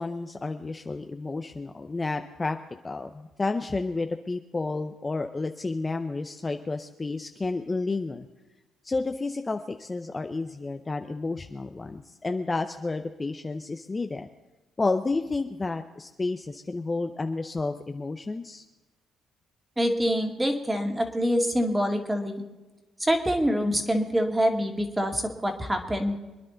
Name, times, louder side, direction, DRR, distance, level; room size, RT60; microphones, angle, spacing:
voice 1, 0.0-2.6 2.8-8.3 8.8-14.3 14.8-18.6, left 3 dB, 20° left, 6 dB, 0.7 m, -31 dB
voice 2, 19.8-22.4 23.0-26.2, equal, 10° right, 4 dB, 2.1 m, -25 dB
25.5 x 10.5 x 3.9 m, 1.2 s
cardioid pair, 115°, 0 cm